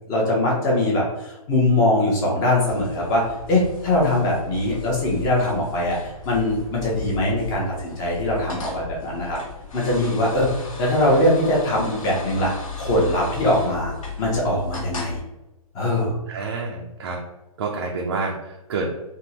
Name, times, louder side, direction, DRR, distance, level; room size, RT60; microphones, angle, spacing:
voice 1, 0.1-9.4 9.7-10.5 10.8-15.2 15.7-16.2, left 1 dB, 20° left, -3 dB, 0.7 m, -22 dB
sound 1, 2.7-15.2, left 5 dB, 60° left, 1.0 m, -36 dB
voice 2, 16.3-17.2 17.6-18.9, right 4 dB, 40° right, -1 dB, 0.5 m, -28 dB
3.5 x 2.1 x 2.8 m, 0.98 s
hypercardioid pair, 155°, 19 cm